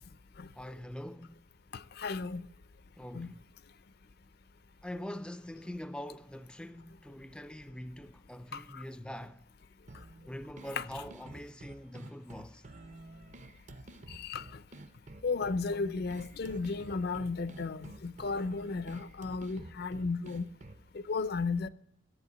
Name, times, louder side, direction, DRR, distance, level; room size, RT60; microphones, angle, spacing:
voice 1, 0.5-1.4 3.0-3.4 4.8-9.4 10.3-12.6, left 1 dB, 5° left, 0.4 m, -43 dB
voice 2, 1.7-2.5 3.1-3.3 8.5-8.8 10.8-10.9 14.1-14.4 15.2-20.5 20.9-21.7, left 4 dB, 55° left, 0.5 m, -34 dB
sound 1, 9.9-20.9, right 2 dB, 40° right, 0.6 m, -51 dB
11.0 x 8.7 x 8.5 m
head